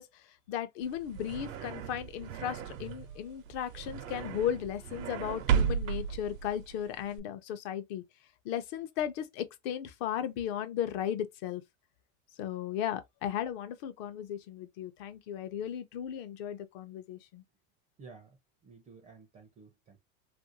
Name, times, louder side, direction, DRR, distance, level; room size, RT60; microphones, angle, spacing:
voice 1, 0.0-8.0 8.4-11.6 12.4-17.4, left 10 dB, 50° left, 0.6 m, -36 dB
sound 1, 0.8-7.2, right 8 dB, 90° right, 0.7 m, -34 dB
voice 2, 18.0-18.4 18.6-20.0, right 4 dB, 15° right, 0.4 m, -53 dB
2.9 x 2.6 x 2.7 m
supercardioid pair, 145°, 39 cm